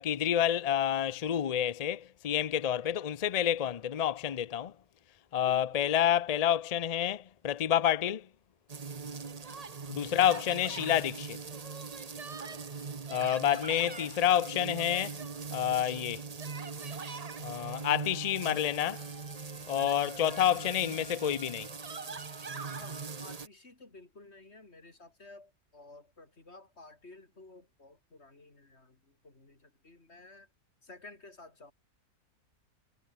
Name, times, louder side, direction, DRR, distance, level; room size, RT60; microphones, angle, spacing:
voice 1, 0.0-4.7 5.3-8.3 9.9-11.4 13.1-15.2 15.5-16.2 17.4-19.0 19.7-21.7, left 10 dB, 70° left, 0.3 m, -29 dB
voice 2, 5.4-5.8 9.8-10.0 13.5-14.1 22.8-30.5 30.8-31.7, left 2 dB, 45° left, 4.1 m, -54 dB
sound 1, 8.7-23.5, right 5 dB, 30° right, 1.0 m, -41 dB
sound 2, 17.6-23.2, equal, 5° left, 2.2 m, -53 dB
omnidirectional pair, 1.6 m